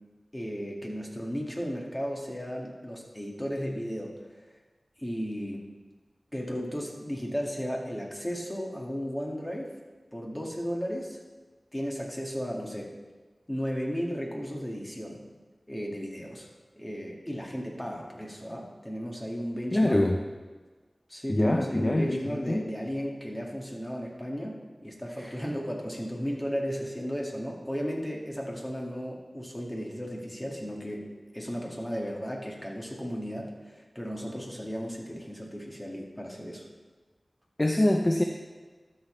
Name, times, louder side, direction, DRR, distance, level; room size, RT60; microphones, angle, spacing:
voice 1, 0.3-4.4 5.0-5.6 6.3-9.7 10.1-11.2 11.7-13.0 13.5-15.2 15.7-16.5 16.7-20.0 21.1-24.6 24.8-31.1 31.3-36.6, equal, 15° left, -1 dB, 1.9 m, -35 dB
voice 2, 19.7-20.2 21.3-22.6 25.2-25.3 37.6-38.2, left 1 dB, 30° left, 2 dB, 0.7 m, -24 dB
13.0 x 6.9 x 3.3 m, 1.3 s
wide cardioid pair, 55°, 0 cm